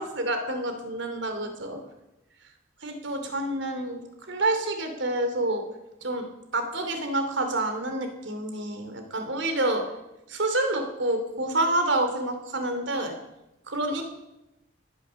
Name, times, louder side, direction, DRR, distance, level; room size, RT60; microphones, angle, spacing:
voice 1, 0.0-1.8 2.8-4.0 4.3-5.6 6.0-6.2 6.5-9.8 10.3-13.1 13.7-14.0, right 1 dB, 65° right, 6 dB, 2.8 m, -28 dB
19.0 x 10.0 x 7.0 m, 0.94 s
head